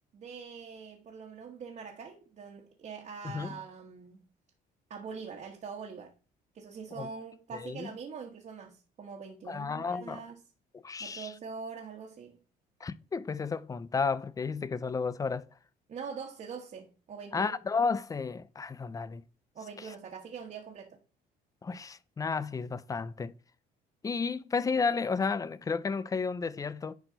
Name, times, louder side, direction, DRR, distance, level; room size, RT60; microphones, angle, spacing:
voice 1, 0.1-4.2 4.9-6.1 6.5-10.4 11.0-12.4 15.9-17.6 19.5-21.0, right 5 dB, 45° right, 1.5 m, -43 dB
voice 2, 3.2-3.6 7.0-7.1 7.5-7.9 9.5-10.2 10.7-11.3 12.8-15.5 17.3-19.2 19.8-19.9 21.6-23.3 24.0-26.9, left 5 dB, 20° left, 0.5 m, -32 dB
10.5 x 4.4 x 4.0 m
cardioid pair, 110°, 17 cm